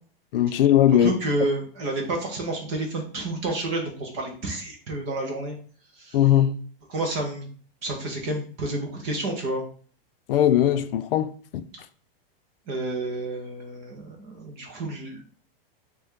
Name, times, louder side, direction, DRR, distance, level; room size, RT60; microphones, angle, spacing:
voice 1, 0.3-1.1 6.1-6.5 10.3-11.6, left 11 dB, 70° left, 0.5 m, -19 dB
voice 2, 1.0-5.6 6.0-6.2 6.9-7.5 7.8-9.6 12.7-15.2, right 2 dB, 15° right, 0.4 m, -30 dB
5.3 x 2.3 x 3.6 m
supercardioid pair, 180°, 29 cm